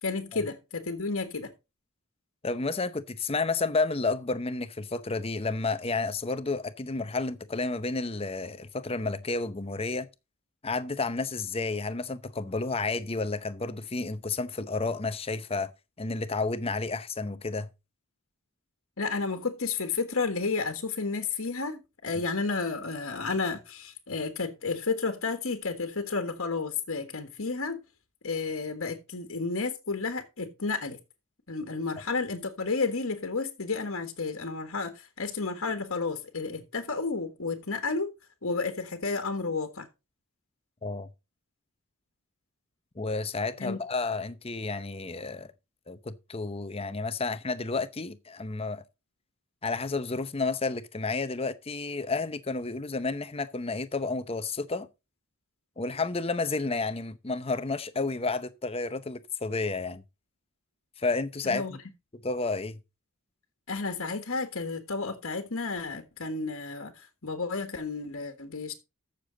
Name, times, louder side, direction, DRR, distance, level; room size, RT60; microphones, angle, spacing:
voice 1, 0.0-1.5 19.0-27.8 28.2-31.0 31.5-38.1 38.4-39.9 43.6-43.8 61.4-61.8 63.7-68.7, left 4 dB, 70° left, 1.5 m, -32 dB
voice 2, 2.4-10.1 10.6-15.7 16.0-17.7 40.8-41.1 43.0-45.5 45.9-48.8 49.6-54.9 55.8-60.0 61.0-61.8 62.2-62.8, left 3 dB, 25° left, 0.7 m, -31 dB
14.0 x 6.8 x 3.9 m
head